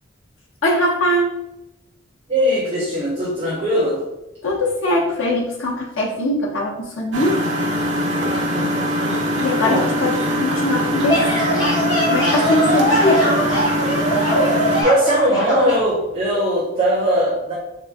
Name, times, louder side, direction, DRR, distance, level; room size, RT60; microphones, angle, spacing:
voice 1, 0.6-1.4 4.4-7.4 9.4-11.8 12.1-13.3, left 1 dB, 80° left, -3 dB, 0.7 m, -21 dB
voice 2, 2.3-4.0 8.3-9.1 9.6-9.9 14.8-17.6, equal, 30° right, -5 dB, 0.7 m, -20 dB
Engine, 7.1-14.8, equal, 75° right, 0.9 m, -22 dB
sound 1, 10.8-15.8, right 1 dB, 20° left, 1.5 m, -21 dB
3.4 x 2.9 x 3.4 m, 0.92 s
head